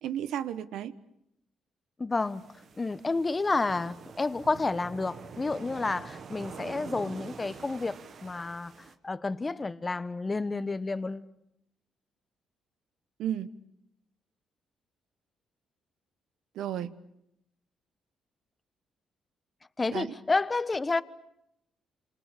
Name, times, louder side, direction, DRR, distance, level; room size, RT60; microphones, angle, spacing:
voice 1, 0.0-0.9 13.2-13.5 16.5-16.9 19.9-20.1, right 10 dB, 80° right, 1.3 m, -33 dB
voice 2, 2.0-2.4 2.8-8.7 9.0-11.3 19.8-21.0, left 3 dB, 25° left, 1.2 m, -30 dB
sound 1, 2.2-8.9, right 6 dB, 55° right, 1.8 m, -46 dB
28.0 x 27.5 x 6.8 m
cardioid pair, 90°, 0 cm